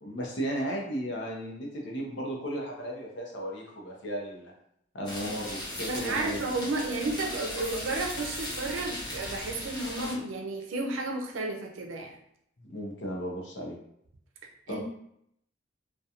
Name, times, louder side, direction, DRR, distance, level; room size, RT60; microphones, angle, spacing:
voice 1, 0.0-4.5 4.9-6.4 12.6-13.8 14.7-14.8, equal, 65° left, -1 dB, 0.6 m, -35 dB
sound 1, 5.0-10.1, left 1 dB, 20° left, 0.7 m, -38 dB
voice 2, 5.9-12.1 14.7-14.8, right 2 dB, 90° right, 2 dB, 0.5 m, -32 dB
Piano, 8.2-10.7, right 2 dB, 5° left, 0.3 m, -53 dB
2.4 x 2.3 x 2.8 m, 0.72 s
head